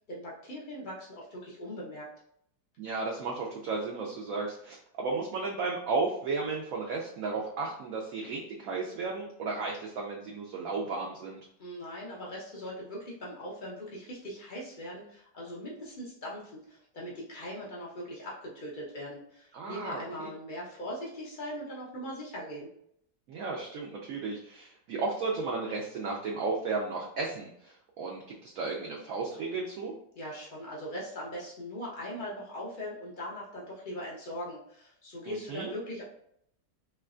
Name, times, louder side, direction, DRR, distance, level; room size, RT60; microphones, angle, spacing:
voice 1, 0.1-2.1 11.6-22.7 30.1-36.0, equal, 70° left, -4 dB, 0.4 m, -40 dB
voice 2, 2.8-11.4 19.5-20.3 23.3-29.9 35.3-35.7, right 3 dB, 75° right, -2 dB, 0.8 m, -34 dB
3.3 x 3.0 x 2.4 m, 0.70 s
omnidirectional pair, 1.9 m